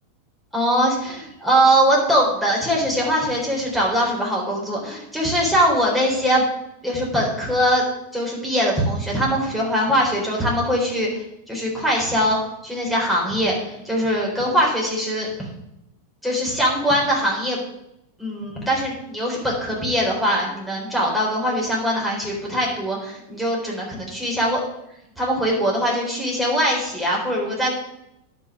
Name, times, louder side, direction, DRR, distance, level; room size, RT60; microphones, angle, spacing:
voice 1, 0.5-6.4 6.8-7.8 8.1-15.3 16.2-17.6 18.2-24.6 25.2-27.7, equal, 5° right, -4 dB, 4.0 m, -22 dB
10.5 x 6.0 x 6.1 m, 0.84 s
figure-of-eight pair, 90°, 0 cm